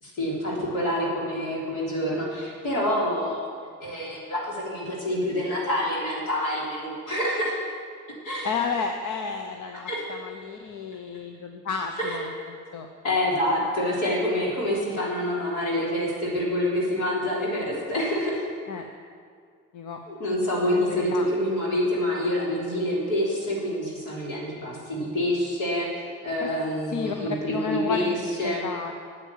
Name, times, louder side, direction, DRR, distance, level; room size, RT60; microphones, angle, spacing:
voice 1, 0.0-3.4 3.8-7.6 8.2-8.5 9.9-10.0 12.0-12.2 13.0-18.5 20.1-28.6, left 1 dB, 90° left, -4 dB, 3.4 m, -27 dB
voice 2, 8.4-12.9 18.7-18.8 19.7-20.0 20.7-21.3 26.4-26.5 26.9-28.1 28.4-28.9, left 5 dB, 70° left, 4 dB, 0.9 m, -32 dB
9.1 x 8.8 x 8.4 m, 2.1 s
supercardioid pair, 60°, 31 cm